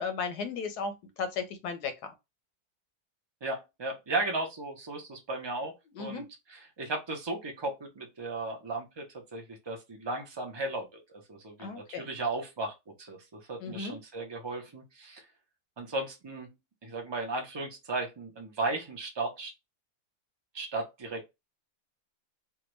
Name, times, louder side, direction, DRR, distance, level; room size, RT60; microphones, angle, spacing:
voice 1, 0.0-2.1 6.0-6.2 11.6-12.0 13.6-13.9, left 5 dB, 85° left, 1.3 m, -35 dB
voice 2, 3.4-11.0 11.3-12.7 13.0-15.2 15.8-16.5 16.8-19.5 20.5-21.3, right 2 dB, 35° right, 0.4 m, -35 dB
3.4 x 2.2 x 3.1 m
omnidirectional pair, 1.7 m